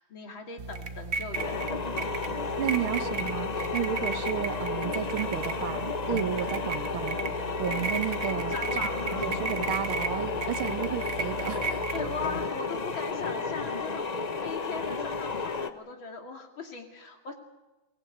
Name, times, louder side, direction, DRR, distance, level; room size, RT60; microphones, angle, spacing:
voice 1, 0.0-1.8 8.5-9.3 11.9-14.2 14.4-17.3, left 4 dB, 70° left, 3 dB, 3.4 m, -39 dB
sound 1, 0.6-12.4, right 4 dB, 40° right, 1.3 m, -35 dB
sound 2, 1.3-15.7, left 4 dB, 40° left, 0.6 m, -32 dB
voice 2, 2.6-7.2 7.6-8.8 9.1-11.8, right 11 dB, 80° right, 10 dB, 1.9 m, -33 dB
23.5 x 17.5 x 9.3 m, 1.1 s
omnidirectional pair, 2.3 m